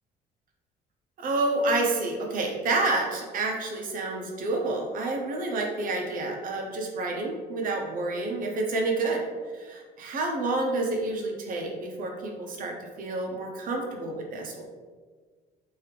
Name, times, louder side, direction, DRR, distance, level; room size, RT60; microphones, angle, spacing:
voice 1, 1.2-9.2 10.0-14.6, right 2 dB, 55° right, 1 dB, 0.7 m, -29 dB
3.3 x 2.7 x 3.2 m, 1.5 s
cardioid pair, 110°, 17 cm